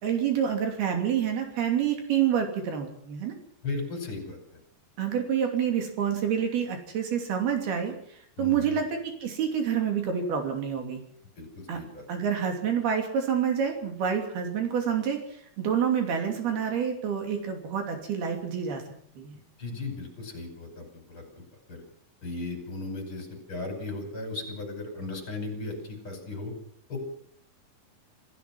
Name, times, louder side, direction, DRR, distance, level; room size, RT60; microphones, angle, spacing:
voice 1, 0.0-3.3 5.0-7.9 8.4-11.0 11.7-11.8 12.1-18.8 19.2-19.4, right 8 dB, 70° right, 3 dB, 4.8 m, -28 dB
voice 2, 3.6-4.6 8.4-8.8 11.4-11.5 11.7-12.1 19.6-21.4 21.7-21.8 22.2-26.5 26.9-27.0, left 3 dB, 30° left, 4 dB, 6.1 m, -36 dB
27.5 x 15.5 x 6.1 m, 0.64 s
omnidirectional pair, 4.7 m